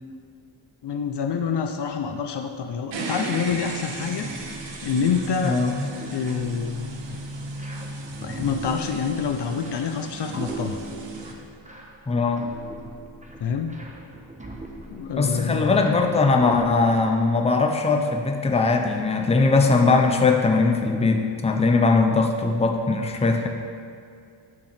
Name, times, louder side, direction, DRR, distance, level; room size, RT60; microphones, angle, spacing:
voice 1, 0.8-4.3 4.8-7.2 8.2-10.8 13.4-13.8 14.9-15.8, left 6 dB, 55° left, 5 dB, 0.6 m, -27 dB
sound 1, 2.9-11.3, right 2 dB, 60° right, 1.0 m, -36 dB
sound 2, 3.5-17.3, right 2 dB, 15° right, 1.0 m, -41 dB
voice 2, 5.4-5.9 12.1-12.5 15.2-23.5, left 3 dB, 15° left, 3 dB, 0.6 m, -20 dB
9.0 x 5.6 x 3.4 m, 2.4 s
cardioid pair, 80°, 50 cm